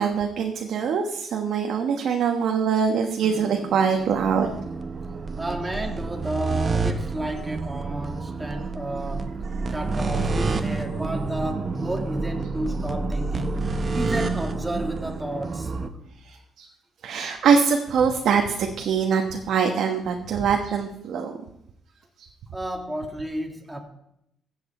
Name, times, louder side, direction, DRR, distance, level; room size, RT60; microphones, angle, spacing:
voice 1, 0.0-4.5 16.3-16.7 17.0-21.4, right 6 dB, 70° right, 1.1 m, -23 dB
sound 1, 3.2-15.9, right 3 dB, 40° right, 1.0 m, -29 dB
voice 2, 5.4-9.4 9.7-13.6 13.9-15.7 22.5-23.8, right 1 dB, 10° right, 2.1 m, -32 dB
15.5 x 7.9 x 4.3 m
cardioid pair, 90°, 0 cm